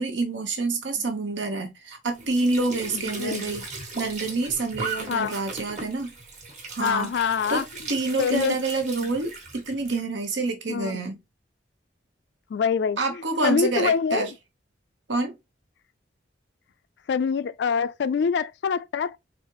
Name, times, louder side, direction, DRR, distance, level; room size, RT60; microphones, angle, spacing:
voice 1, 0.0-3.6 3.9-6.1 6.7-7.1 7.5-7.6 7.9-11.2 13.0-14.3 15.1-15.3, right 3 dB, 80° right, 1.0 m, -27 dB
Squeak / Sink (filling or washing) / Trickle dribble, 2.1-10.0, right 3 dB, 40° right, 1.3 m, -38 dB
voice 2, 2.9-3.5 5.1-5.4 6.8-7.6 8.2-8.6 9.0-9.1 10.7-11.0 12.5-14.3 17.1-19.2, left 6 dB, 65° left, 0.3 m, -25 dB
4.0 x 2.8 x 2.9 m
head